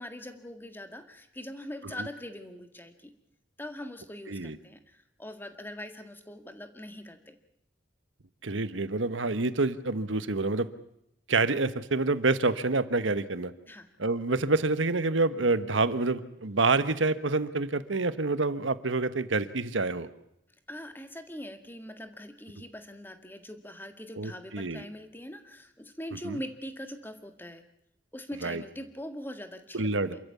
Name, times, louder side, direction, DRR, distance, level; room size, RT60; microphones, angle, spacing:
voice 1, 0.0-3.1 3.6-7.4 13.7-13.9 20.7-27.6 28.1-30.2, left 1 dB, 10° left, 7 dB, 1.9 m, -42 dB
voice 2, 8.4-10.7 11.3-13.5 14.0-20.1 24.2-24.8 26.2-26.4 28.4-28.6 29.7-30.2, right 3 dB, 85° right, 12 dB, 1.3 m, -27 dB
28.0 x 14.0 x 8.4 m, 0.79 s
head